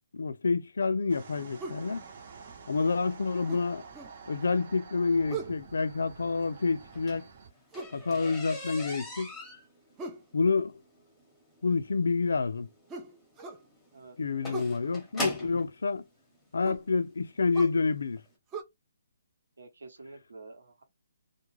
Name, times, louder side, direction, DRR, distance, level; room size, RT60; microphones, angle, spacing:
voice 1, 0.1-2.0 2.7-3.8 4.3-7.3 7.9-9.3 10.3-10.7 11.6-12.7 14.2-16.0 16.5-18.2, left 4 dB, 80° left, 0.4 m, -28 dB
sound 1, 1.1-7.5, right 5 dB, 45° right, 0.8 m, -49 dB
sound 2, 1.6-1.9 3.5-4.2 5.3-5.6 7.7-8.0 10.0-10.3 12.9-13.6 14.5-14.8 16.6-16.9 17.5-17.8 18.5-18.6, right 4 dB, 15° right, 0.4 m, -39 dB
sound 3, 6.8-15.7 16.6-16.7 17.2-17.5 17.7-17.8 18.2-18.3, left 1 dB, 5° left, 0.8 m, -40 dB
voice 2, 13.9-14.5 19.6-20.8, right 3 dB, 80° right, 0.9 m, -49 dB
2.4 x 2.1 x 3.0 m
hypercardioid pair, 160°, 0 cm